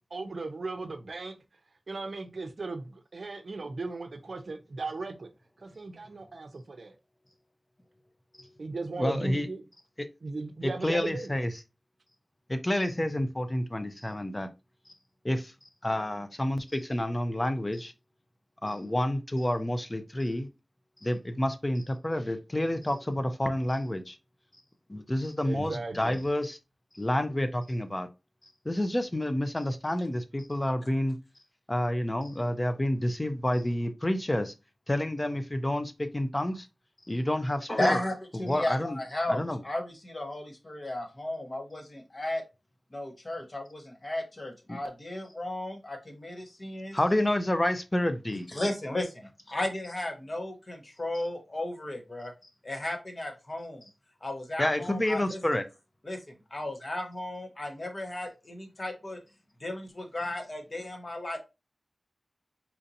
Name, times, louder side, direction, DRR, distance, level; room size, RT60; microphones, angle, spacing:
voice 1, 0.1-1.4 1.9-5.3 5.6-6.9 8.6-9.6 10.2-11.3 25.4-26.2, right 3 dB, 75° right, 0.5 m, -37 dB
voice 2, 9.0-9.5 10.0-10.1 10.6-11.5 12.5-14.5 15.2-15.5 15.8-17.9 18.6-20.5 21.0-24.2 24.9-26.6 26.9-28.1 28.6-31.2 31.7-34.5 34.9-36.7 37.1-38.0 38.4-39.0 39.3-39.6 44.7-44.8 46.9-48.5 54.6-55.6, left 1 dB, 30° left, 0.5 m, -29 dB
voice 3, 37.7-42.4 42.9-47.0 48.5-52.3 52.6-53.9 54.2-55.4 56.1-56.2 56.5-59.2 59.6-61.4, left 1 dB, 45° left, 1.0 m, -34 dB
4.3 x 2.7 x 2.5 m
cardioid pair, 45°, 0 cm